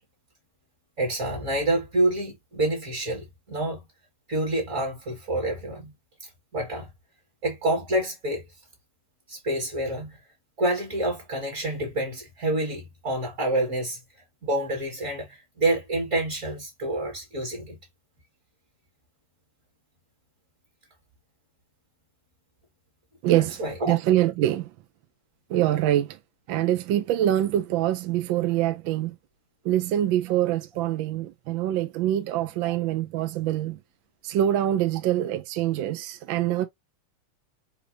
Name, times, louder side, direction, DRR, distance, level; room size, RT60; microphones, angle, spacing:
voice 1, 1.0-3.8 4.3-5.9 6.5-6.9 7.4-8.4 9.3-10.2 10.6-14.0 14.4-17.8 23.3-24.0 32.6-32.7, right 1 dB, 40° right, 2.1 m, -28 dB
voice 2, 23.2-24.7 25.5-26.2 26.5-29.2 29.6-33.8 34.2-36.7, right 12 dB, 75° right, 1.3 m, -25 dB
6.7 x 2.9 x 2.7 m
omnidirectional pair, 2.4 m